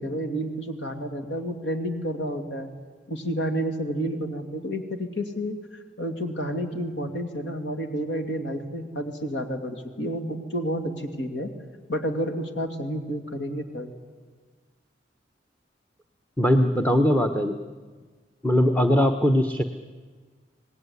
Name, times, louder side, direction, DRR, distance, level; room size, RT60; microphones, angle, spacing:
voice 1, 0.0-2.7 3.1-11.5 11.9-13.9, equal, 85° left, 6 dB, 2.6 m, -30 dB
voice 2, 16.4-17.5 18.4-19.6, equal, 10° left, 7 dB, 1.0 m, -20 dB
26.5 x 19.0 x 9.6 m, 1.5 s
head